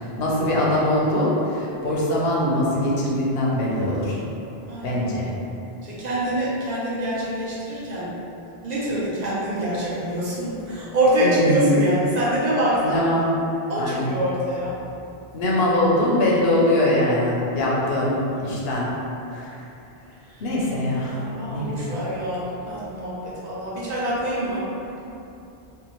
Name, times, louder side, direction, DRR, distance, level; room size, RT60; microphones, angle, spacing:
voice 1, 0.0-4.2 4.8-5.3 11.2-11.7 12.8-13.3 13.8-14.2 15.3-18.9 19.3-19.6 20.4-21.2 21.5-21.9, left 1 dB, 75° left, -5 dB, 0.8 m, -22 dB
voice 2, 4.7-5.0 5.8-8.1 8.6-13.0 13.7-14.7 20.3-20.4 21.1-24.6, right 1 dB, 50° right, -8 dB, 0.6 m, -25 dB
2.7 x 2.1 x 2.9 m, 2.8 s
omnidirectional pair, 1.0 m